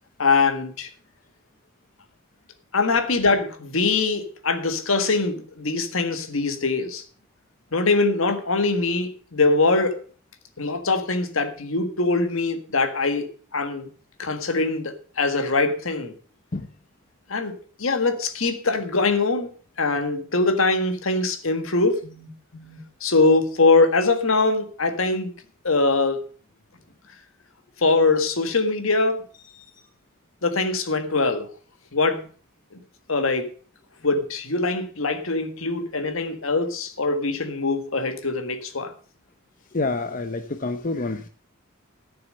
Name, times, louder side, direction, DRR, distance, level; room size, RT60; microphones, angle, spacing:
voice 1, 0.2-0.9 2.7-7.0 7.7-10.0 10.6-13.9 14.2-16.1 17.3-19.5 19.8-25.3 25.6-26.2 27.8-29.2 30.4-31.5 31.9-32.2 32.7-32.8 33.1-33.5 34.0-38.9, left 3 dB, 75° left, 1.7 m, -23 dB
voice 2, 39.7-41.3, left 3 dB, 40° left, 0.8 m, -27 dB
13.0 x 7.0 x 6.6 m
head